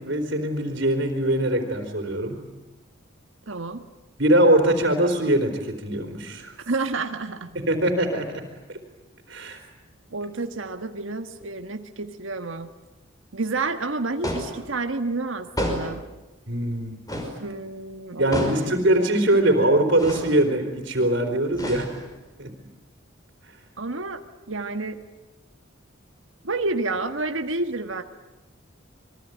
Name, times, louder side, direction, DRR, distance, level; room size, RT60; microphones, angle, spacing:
voice 1, 0.0-2.4 4.2-6.6 7.7-8.3 8.7-8.8 9.3-9.6 16.5-17.0 18.2-21.9 22.4-22.5 23.5-23.6, right 1 dB, 65° right, 4 dB, 4.1 m, -22 dB
voice 2, 3.5-3.8 6.7-7.5 10.1-12.7 13.3-16.0 17.4-18.6 19.0-19.1 23.8-24.2 24.5-25.0 26.4-28.0, right 3 dB, 80° right, 7 dB, 1.5 m, -29 dB
sound 1, 14.2-14.6 15.6-16.0 17.1-17.4 18.3-18.7 20.0-20.3 21.5-22.2, equal, 20° left, 5.3 m, -29 dB
27.5 x 23.0 x 9.4 m, 1.1 s
head